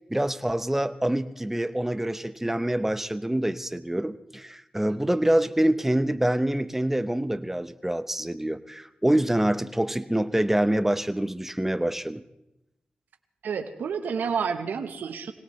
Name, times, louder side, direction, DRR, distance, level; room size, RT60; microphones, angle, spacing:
voice 1, 0.1-12.2, right 1 dB, 10° right, 11 dB, 0.9 m, -26 dB
voice 2, 13.4-15.3, right 6 dB, 90° right, 7 dB, 1.1 m, -29 dB
25.0 x 18.0 x 3.2 m, 0.89 s
cardioid pair, 60°, 3 cm